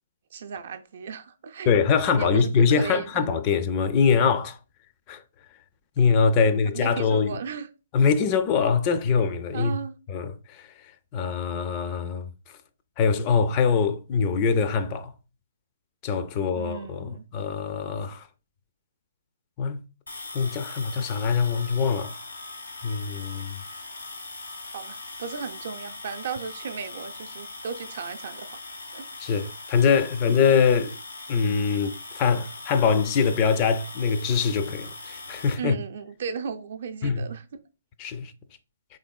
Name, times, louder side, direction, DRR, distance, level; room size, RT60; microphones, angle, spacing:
voice 1, 0.3-1.7 2.2-3.2 6.4-7.7 9.5-10.0 16.5-17.2 24.7-28.6 28.9-29.1 35.6-37.4, right 6 dB, 55° right, 0.4 m, -35 dB
voice 2, 1.7-4.6 5.1-5.2 6.0-7.4 7.9-9.8 10.1-10.7 11.1-12.3 13.0-15.1 16.0-18.3 19.6-19.8 20.3-22.2 22.8-23.6 29.2-31.0 31.3-35.8 37.0-37.3 38.0-38.3, left 5 dB, 30° left, 0.4 m, -23 dB
sound 1, 20.1-35.5, left 2 dB, 85° left, 0.7 m, -40 dB
3.8 x 3.5 x 2.3 m
figure-of-eight pair, 130°, 0 cm